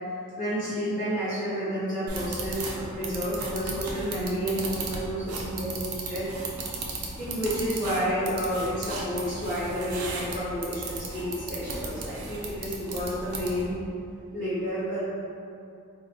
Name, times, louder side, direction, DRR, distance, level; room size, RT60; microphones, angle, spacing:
voice 1, 0.4-6.3 7.2-13.8 14.3-15.0, equal, 15° left, -13 dB, 1.1 m, -30 dB
sound 1, 2.1-13.7, right 3 dB, 75° right, 0.5 m, -36 dB
3.3 x 2.1 x 3.8 m, 2.6 s
head